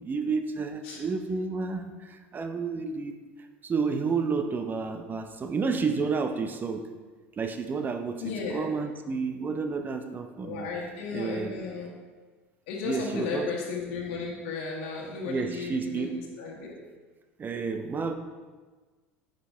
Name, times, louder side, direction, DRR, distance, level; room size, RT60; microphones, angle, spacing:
voice 1, 0.0-3.1 3.6-6.9 7.4-8.2 8.5-10.7 11.1-11.6 12.9-13.5 15.2-16.2 17.4-18.1, right 4 dB, 30° right, 7 dB, 0.8 m, -30 dB
voice 2, 8.2-8.7 10.4-11.9 12.7-16.8, left 4 dB, 65° left, -3 dB, 1.5 m, -34 dB
9.6 x 5.3 x 3.5 m, 1.4 s
hypercardioid pair, 80°, 6 cm